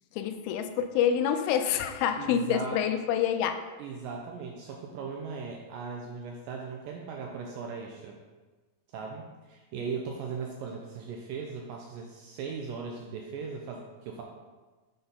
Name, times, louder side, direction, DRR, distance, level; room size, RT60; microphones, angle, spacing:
voice 1, 0.1-3.6, left 9 dB, 85° left, 7 dB, 2.4 m, -27 dB
voice 2, 2.2-2.8 3.8-8.2 8.9-14.2, right 5 dB, 80° right, 0 dB, 2.0 m, -38 dB
6.7 x 4.0 x 5.4 m, 1.3 s
omnidirectional pair, 4.4 m